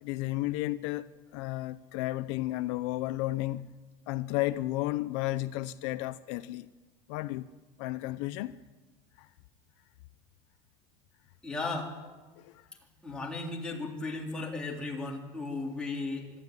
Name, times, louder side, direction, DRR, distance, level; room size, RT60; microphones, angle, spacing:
voice 1, 0.0-3.8 4.1-6.7 7.1-7.5 7.8-8.6 9.2-9.3 12.4-12.7, left 17 dB, 70° left, 0.7 m, -33 dB
voice 2, 11.4-12.0 13.0-16.3, left 3 dB, 5° left, 3.5 m, -35 dB
25.0 x 13.0 x 9.5 m
cardioid pair, 170°, 16 cm